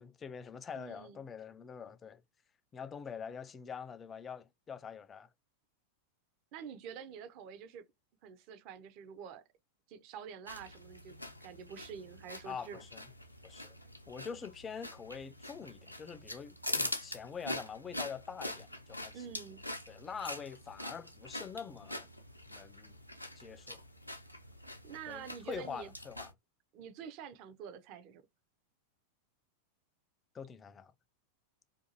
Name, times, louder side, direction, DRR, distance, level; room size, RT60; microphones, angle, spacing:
voice 1, 0.0-2.2 2.7-5.3 12.5-13.1 13.4-13.7 14.1-19.3 19.9-22.1 22.5-23.0 23.4-23.8 25.1-26.3 30.3-30.9, left 6 dB, 20° left, 0.3 m, -45 dB
voice 2, 0.7-1.2 6.5-7.8 8.2-9.4 9.9-12.8 19.1-19.6 24.8-25.9 26.7-28.2, right 7 dB, 40° right, 0.5 m, -47 dB
sound 1, 10.5-26.3, left 1 dB, 85° left, 0.4 m, -44 dB
2.6 x 2.4 x 2.6 m
figure-of-eight pair, 90°, 0 cm